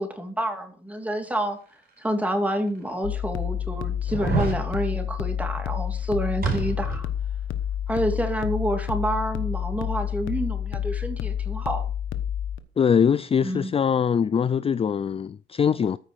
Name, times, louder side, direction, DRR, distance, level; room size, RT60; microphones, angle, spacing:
voice 1, 0.0-1.6 2.0-7.1 7.9-11.8 13.4-13.7, equal, 5° right, 2.9 m, -28 dB
sound 1, 2.1-2.2 2.9-3.0 4.1-4.6 6.4-7.1 7.4-7.5, right 5 dB, 50° right, 4.6 m, -27 dB
sound 2, 3.0-12.6, left 10 dB, 80° left, 1.1 m, -29 dB
voice 2, 12.8-16.0, left 7 dB, 30° left, 0.4 m, -22 dB
14.0 x 5.1 x 6.4 m
cardioid pair, 90°, 20 cm